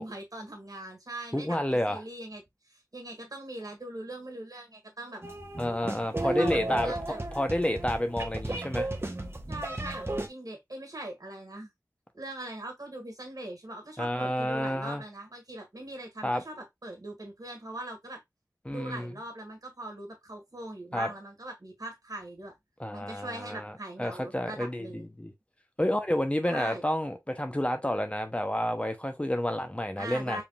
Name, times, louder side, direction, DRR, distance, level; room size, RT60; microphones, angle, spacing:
voice 1, 0.0-5.2 6.2-7.2 9.5-11.7 12.1-18.2 18.7-22.6 22.9-25.1 26.4-26.8 30.0-30.4, right 1 dB, 65° right, 1.8 m, -41 dB
voice 2, 1.3-2.0 5.6-7.0 7.3-8.9 14.0-15.0 16.2-16.4 18.6-19.1 20.9-21.1 22.8-23.7 24.0-25.3 25.8-30.4, left 1 dB, 20° left, 0.8 m, -30 dB
sound 1, 5.2-10.3, right 2 dB, 40° right, 1.1 m, -34 dB
4.9 x 3.6 x 2.4 m
wide cardioid pair, 50°, 7 cm